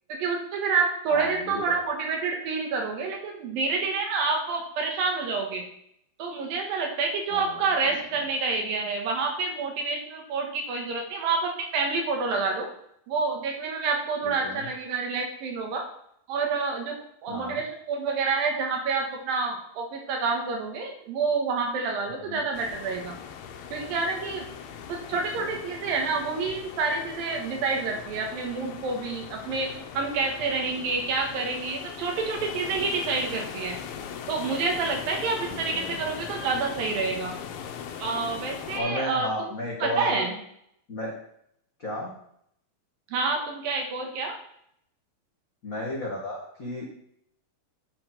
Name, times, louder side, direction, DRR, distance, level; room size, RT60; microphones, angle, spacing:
voice 1, 0.1-5.6 6.2-12.7 13.1-15.8 16.3-17.0 17.2-23.2 23.7-24.5 24.9-33.8 34.3-37.3 38.0-39.5 39.8-40.4 43.1-44.3, right 4 dB, 75° right, 1 dB, 3.1 m, -28 dB
voice 2, 1.1-1.8 7.3-7.6 14.2-14.6 17.3-17.6 22.2-22.4 25.1-25.5 35.7-36.0 38.8-40.3 40.9-41.1 41.8-42.2 45.6-46.9, left 1 dB, 70° left, -5 dB, 0.8 m, -33 dB
sound 1, 22.5-38.8, left 7 dB, 85° left, 2.7 m, -40 dB
9.5 x 4.6 x 5.7 m, 0.71 s
omnidirectional pair, 4.3 m